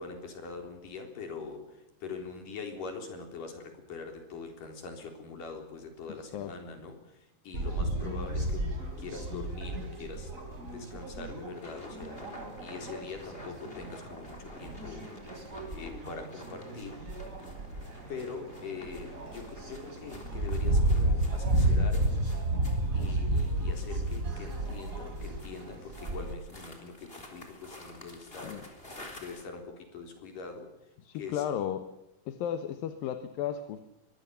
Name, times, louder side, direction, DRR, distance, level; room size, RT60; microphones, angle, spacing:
voice 1, 0.0-8.7 9.0-10.3 10.6-15.1 15.7-17.0 18.1-22.3 22.9-28.6 29.2-30.7 31.1-31.4, left 4 dB, 70° left, 5 dB, 5.4 m, -43 dB
sound 1, 7.5-26.3, right 1 dB, 25° right, 3.7 m, -32 dB
voice 2, 7.9-8.3 28.4-28.6 31.0-31.9 32.3-33.8, left 9 dB, 85° left, 10 dB, 2.9 m, -34 dB
sound 2, 11.5-29.4, left 1 dB, 15° left, 4.0 m, -50 dB
23.5 x 21.0 x 6.9 m, 0.91 s
omnidirectional pair, 4.0 m